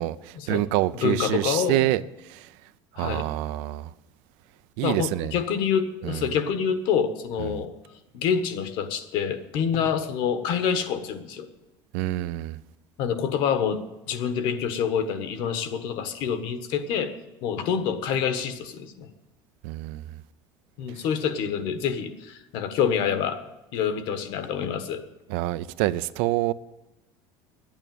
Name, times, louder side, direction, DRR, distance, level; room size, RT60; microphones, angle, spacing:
voice 1, 0.0-2.0 2.3-2.5 3.0-3.9 4.8-5.3 6.0-6.2 7.4-7.6 11.9-12.6 19.6-20.0 25.3-26.5, right 16 dB, 75° right, 0.5 m, -26 dB
voice 2, 1.0-1.8 3.0-3.3 4.8-7.7 8.1-11.5 13.0-13.8 14.1-17.1 17.4-19.1 20.8-23.4 23.7-25.0, left 7 dB, 60° left, 1.4 m, -27 dB
11.0 x 8.9 x 9.1 m
cardioid pair, 160°, 9 cm